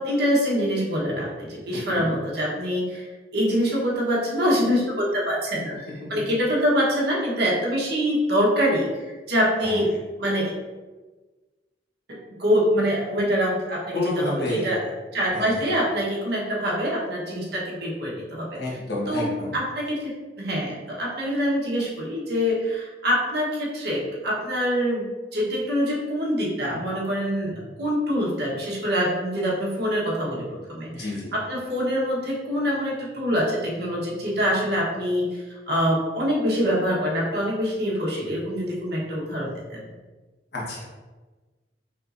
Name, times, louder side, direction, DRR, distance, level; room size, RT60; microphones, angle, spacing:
voice 1, 0.0-3.1 3.3-9.9 10.2-10.5 12.1-14.8 15.1-18.6 19.1-39.9, equal, 65° right, -4 dB, 1.3 m, -25 dB
voice 2, 1.8-2.1 9.6-9.8 13.9-14.8 15.3-15.5 18.5-19.6 27.5-27.7 30.9-31.3 40.5-40.9, left 1 dB, 65° left, -5 dB, 1.4 m, -29 dB
5.5 x 3.2 x 2.6 m, 1.3 s
head